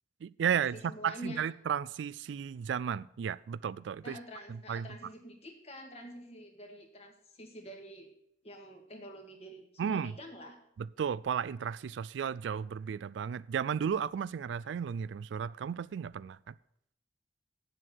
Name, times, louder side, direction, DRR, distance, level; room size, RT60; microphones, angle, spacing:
voice 1, 0.2-4.2 4.5-4.9 9.8-10.2 10.8-16.5, right 7 dB, 80° right, 0.3 m, -34 dB
voice 2, 0.9-1.4 4.0-8.1 8.4-10.6, equal, 35° left, 1.8 m, -47 dB
8.3 x 7.6 x 7.7 m
head